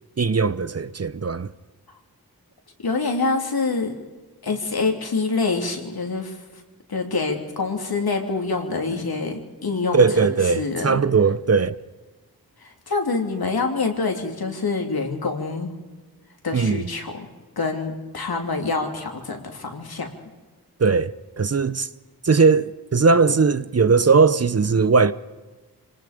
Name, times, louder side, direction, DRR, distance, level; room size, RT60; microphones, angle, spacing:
voice 1, 0.2-1.5 9.9-11.8 16.5-16.8 20.8-21.9 22.2-25.1, right 4 dB, 40° right, 0.8 m, -19 dB
voice 2, 2.8-3.9 4.4-6.4 6.9-11.0 12.6-15.7 16.4-17.3 17.6-20.1, left 3 dB, 70° left, 3.1 m, -26 dB
26.0 x 19.5 x 5.2 m
wide cardioid pair, 65°, 38 cm